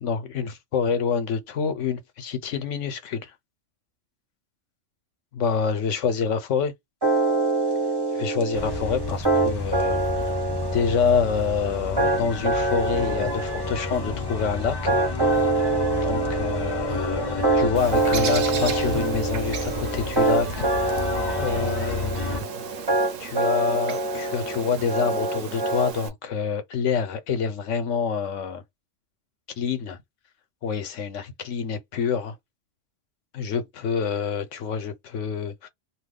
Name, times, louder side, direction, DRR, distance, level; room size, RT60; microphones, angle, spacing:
voice 1, 0.0-3.3 5.3-6.7 8.1-10.4 10.7-15.0 15.5-15.6 16.0-21.0 21.4-22.5 23.2-28.6 29.6-30.0 30.6-32.4 33.3-35.7, left 6 dB, 75° left, 1.1 m, -27 dB
sound 1, 7.0-25.9, right 3 dB, 20° right, 1.0 m, -25 dB
sound 2, 8.5-22.4, left 3 dB, 25° left, 0.6 m, -31 dB
Bird, 17.8-26.1, right 7 dB, 85° right, 1.2 m, -36 dB
2.8 x 2.3 x 3.6 m
omnidirectional pair, 1.3 m